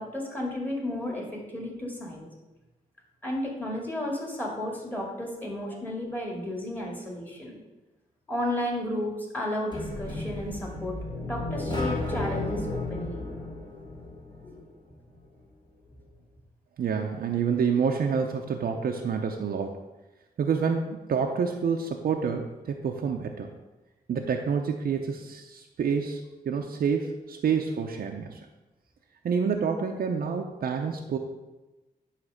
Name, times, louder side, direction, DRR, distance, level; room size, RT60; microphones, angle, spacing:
voice 1, 0.0-2.3 3.2-7.6 8.3-13.3 14.4-14.6, left 1 dB, 10° left, -2 dB, 2.4 m, -33 dB
sound 1, 9.7-14.6, left 2 dB, 30° left, 2.0 m, -33 dB
voice 2, 16.8-19.8 20.4-23.5 24.1-28.4 29.2-31.2, right 6 dB, 70° right, 2 dB, 0.7 m, -28 dB
9.6 x 3.3 x 6.5 m, 1.1 s
cardioid pair, 85°, 16 cm